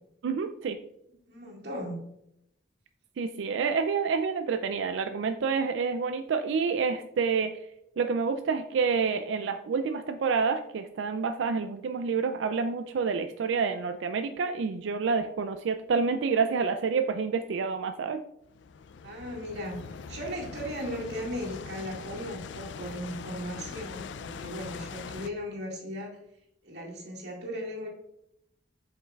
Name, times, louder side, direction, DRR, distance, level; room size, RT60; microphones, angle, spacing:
voice 1, 0.2-0.8 3.2-7.6 8.0-18.2, right 5 dB, 80° right, 8 dB, 0.4 m, -28 dB
voice 2, 1.3-2.0 19.0-26.2 26.6-27.9, equal, 60° right, -3 dB, 2.1 m, -37 dB
sound 1, 18.5-25.3, left 5 dB, 70° left, 0.4 m, -42 dB
7.6 x 5.4 x 2.4 m, 0.80 s
head